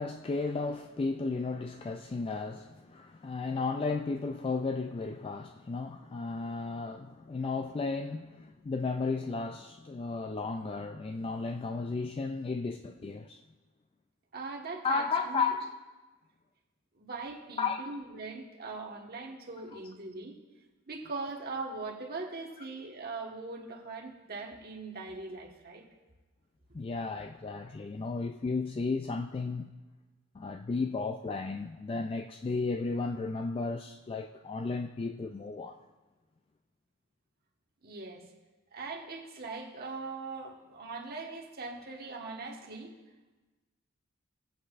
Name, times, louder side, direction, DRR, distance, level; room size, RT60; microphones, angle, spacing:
voice 1, 0.0-13.4 14.8-15.7 17.6-17.8 26.7-29.8 30.3-35.8, left 4 dB, 30° left, 0.3 m, -34 dB
voice 2, 14.3-15.5 16.9-20.3 20.9-25.8 37.8-38.2 38.7-42.9, right 3 dB, 50° right, 1.3 m, -41 dB
18.5 x 8.1 x 2.4 m
head